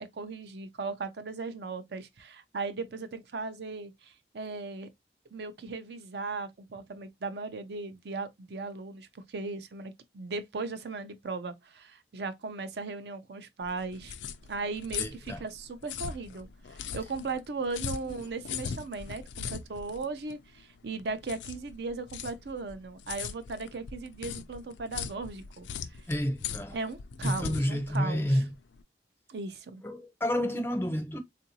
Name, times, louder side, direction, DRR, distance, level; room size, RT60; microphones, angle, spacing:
voice 1, 0.0-4.9 5.3-14.1 14.5-19.2 19.5-26.0 26.7-28.4 29.3-29.8, right 3 dB, 65° right, 0.5 m, -37 dB
sound 1, 13.6-28.8, left 7 dB, 85° left, 0.4 m, -40 dB
voice 2, 15.0-15.4 26.1-26.8 27.2-28.5 29.8-31.2, equal, 10° left, 0.5 m, -29 dB
3.7 x 2.5 x 2.8 m
head